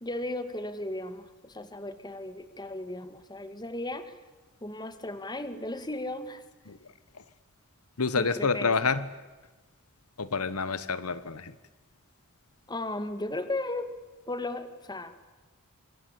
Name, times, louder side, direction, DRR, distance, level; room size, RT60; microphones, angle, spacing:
voice 1, 0.0-4.1 4.6-6.4 8.2-8.7 12.7-13.9 14.3-15.3, left 2 dB, 20° left, 11 dB, 2.0 m, -35 dB
voice 2, 8.0-9.1 10.2-11.5, left 4 dB, 85° left, 16 dB, 1.3 m, -28 dB
26.0 x 25.0 x 8.4 m, 1.2 s
head